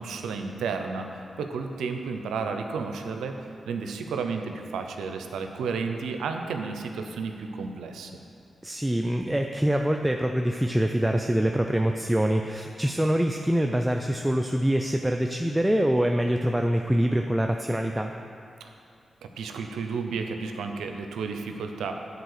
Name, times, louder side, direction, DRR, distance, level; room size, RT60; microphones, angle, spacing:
voice 1, 0.0-3.4 3.7-8.1 18.6-18.7 19.2-22.0, right 5 dB, 90° right, 5 dB, 0.5 m, -32 dB
voice 2, 8.6-18.1, right 1 dB, 10° right, 4 dB, 0.4 m, -25 dB
7.9 x 4.0 x 6.5 m, 2.6 s
supercardioid pair, 50°, 0 cm